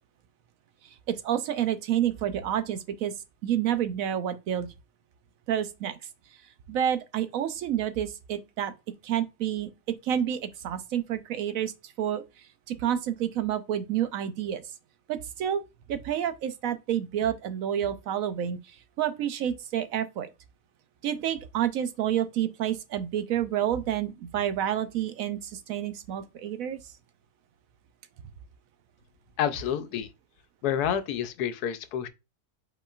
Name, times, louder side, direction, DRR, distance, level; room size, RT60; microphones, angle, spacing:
voice 1, 1.1-3.1 3.4-4.7 5.5-6.0 6.7-8.7 9.0-9.7 10.0-12.2 12.7-14.6 15.1-15.6 15.9-18.6 19.0-20.3 21.0-26.8, right 10 dB, 70° right, 0.9 m, -29 dB
voice 2, 29.4-30.1 30.6-32.1, left 9 dB, 85° left, 1.2 m, -28 dB
5.1 x 4.4 x 2.4 m
omnidirectional pair, 1.6 m